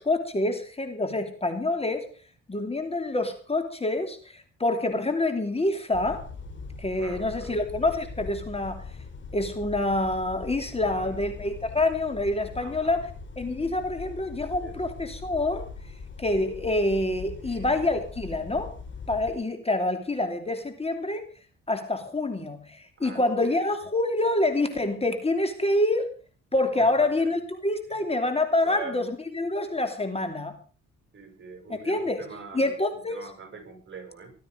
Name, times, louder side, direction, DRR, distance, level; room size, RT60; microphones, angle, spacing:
voice 1, 0.0-2.1 2.5-6.2 6.8-8.8 9.3-13.1 13.4-15.6 16.2-18.7 19.1-21.3 21.7-26.1 26.5-30.5 31.7-32.3 32.5-33.2, left 2 dB, 20° left, 7 dB, 3.0 m, -27 dB
sound 1, 5.9-19.3, left 4 dB, 40° left, 4.8 m, -41 dB
voice 2, 7.0-7.6 10.8-11.3 12.6-13.0 14.6-14.8 17.4-17.7 23.0-23.8 26.8-27.3 27.9-28.0 28.6-29.0 31.1-34.3, right 5 dB, 40° right, 5 dB, 7.0 m, -44 dB
18.5 x 13.5 x 5.2 m, 0.39 s
cardioid pair, 90°, 30 cm